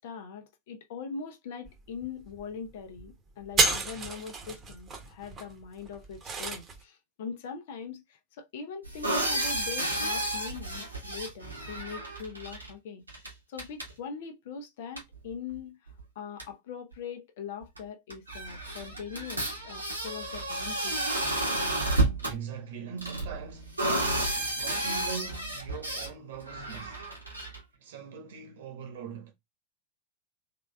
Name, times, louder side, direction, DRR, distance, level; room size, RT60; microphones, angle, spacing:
voice 1, 0.0-13.0 13.5-21.0, left 6 dB, 55° left, 0.8 m, -42 dB
sound 1, 1.7-1.8 2.0-2.4 2.8-3.1 3.4-6.8, right 3 dB, 25° right, 1.1 m, -30 dB
sound 2, 8.8-12.7 13.1-13.3 13.6-13.9 15.0-15.1 16.0-16.1 16.4-16.5 17.8-17.9 18.1-22.3 23.0-26.1 26.5-27.6, right 1 dB, 85° right, 1.6 m, -31 dB
voice 2, 22.0-24.0 24.3-27.1 27.7-29.3, right 7 dB, 55° right, 1.4 m, -42 dB
3.9 x 3.3 x 2.3 m
figure-of-eight pair, 90°, 0 cm